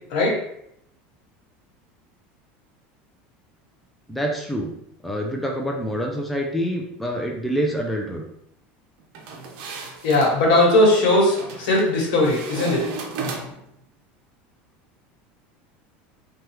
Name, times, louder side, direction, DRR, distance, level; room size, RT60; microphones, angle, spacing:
voice 1, 4.1-4.7 5.0-8.2, equal, ahead, 0 dB, 0.3 m, -26 dB
sound 1, 9.1-10.3 11.4-11.9 12.2-13.7, right 4 dB, 60° right, 0.6 m, -34 dB
voice 2, 10.0-12.8, left 1 dB, 70° left, -2 dB, 1.2 m, -18 dB
3.2 x 2.2 x 3.0 m, 0.74 s
supercardioid pair, 150°, 5 cm